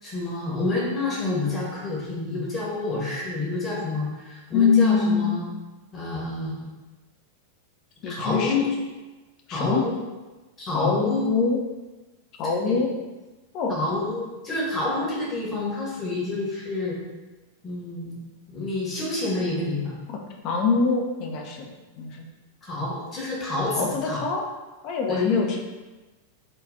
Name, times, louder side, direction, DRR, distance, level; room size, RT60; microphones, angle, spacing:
voice 1, 0.0-5.4 5.9-6.7 8.1-8.7 9.5-10.0 10.6-11.3 12.6-12.8 13.7-17.0 17.6-18.2 18.5-20.0 22.6-24.2 25.1-25.4, left 2 dB, 25° left, -5 dB, 1.0 m, -28 dB
voice 2, 4.5-5.4 8.0-8.7 9.5-9.8 10.7-11.6 12.4-12.9 13.5-13.8 20.1-20.2 20.4-21.7 22.0-22.3 23.7-24.5 24.8-25.6, left 5 dB, 40° left, 2 dB, 0.5 m, -24 dB
3.7 x 2.3 x 2.5 m, 1.2 s
figure-of-eight pair, 90°, 0 cm